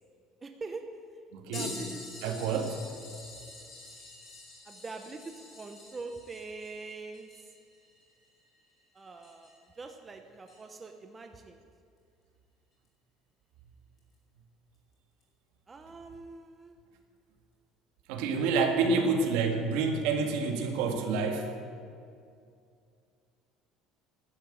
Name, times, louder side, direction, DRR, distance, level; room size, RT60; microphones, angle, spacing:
voice 1, 0.4-0.9 1.5-2.7 3.1-3.2 4.7-7.3 8.9-11.6 15.7-16.7 18.8-19.2 19.7-20.0, right 3 dB, 15° right, 5 dB, 0.7 m, -44 dB
voice 2, 1.3-1.9 2.2-2.8 18.1-21.5, right 4 dB, 75° right, 4 dB, 1.8 m, -28 dB
sound 1, 1.5-9.7 10.5-10.6 12.8-12.9 14.0-14.1 15.2-15.3, left 2 dB, 30° left, 4.4 m, -47 dB
12.0 x 9.8 x 7.9 m, 2.4 s
cardioid pair, 175°, 0 cm